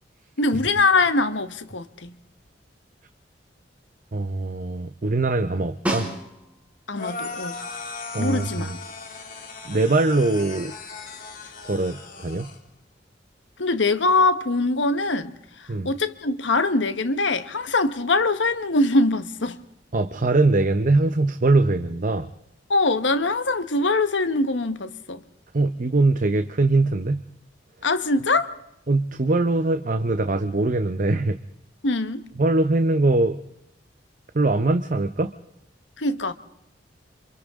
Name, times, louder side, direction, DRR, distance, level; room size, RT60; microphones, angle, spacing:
voice 1, 0.4-2.2 6.9-7.6 8.2-8.7 13.6-19.6 22.7-25.2 27.8-28.5 31.8-32.2 36.0-36.3, left 3 dB, 80° left, 1.3 m, -23 dB
voice 2, 4.1-6.1 8.1-8.7 9.7-10.7 11.6-12.5 15.7-15.9 19.9-22.3 25.5-27.2 28.9-31.4 32.4-33.4 34.3-35.3, right 2 dB, 45° right, 0.7 m, -22 dB
Snare drum, 5.9-6.8 11.2-11.3, right 1 dB, 10° right, 3.9 m, -29 dB
sound 1, 7.0-12.6, left 4 dB, 50° left, 3.2 m, -37 dB
28.5 x 27.0 x 3.7 m
head